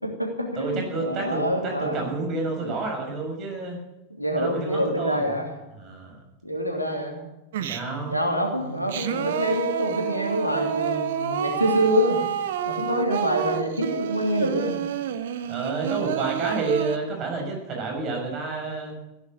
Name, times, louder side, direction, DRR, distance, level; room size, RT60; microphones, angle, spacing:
voice 1, 0.0-2.0 2.6-2.7 4.2-5.5 6.4-7.2 8.1-12.2 12.6-14.8, equal, 90° left, 1 dB, 3.0 m, -26 dB
voice 2, 0.5-3.8 4.3-5.3 5.8-6.2 7.6-8.2 15.5-18.9, right 3 dB, 35° right, 1 dB, 6.4 m, -29 dB
Singing, 7.5-8.1 8.6-17.0, right 9 dB, 60° right, 1.1 m, -29 dB
16.0 x 10.0 x 8.8 m, 0.96 s
figure-of-eight pair, 90°, 0 cm